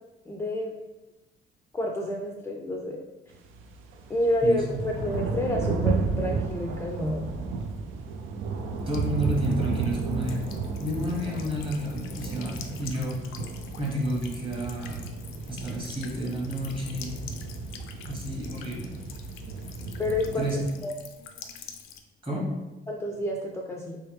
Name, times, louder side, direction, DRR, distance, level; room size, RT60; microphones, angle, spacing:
voice 1, 0.3-0.8 1.7-3.0 4.1-7.3 20.0-20.5 20.8-20.9 22.9-24.0, left 1 dB, 15° left, 0 dB, 0.4 m, -29 dB
sound 1, 3.3-20.8, right 4 dB, 85° right, 0.4 m, -33 dB
voice 2, 4.4-4.8 8.9-10.5 10.8-13.3 13.8-15.0 15.5-17.2 18.1-19.0 20.4-20.7 22.2-22.5, equal, 25° right, -2 dB, 1.3 m, -30 dB
Buzz / Water tap faucet / Trickle dribble, 8.8-22.0, left 7 dB, 85° left, 0.4 m, -47 dB
3.4 x 3.1 x 3.1 m, 1.1 s
cardioid pair, 90°, 20 cm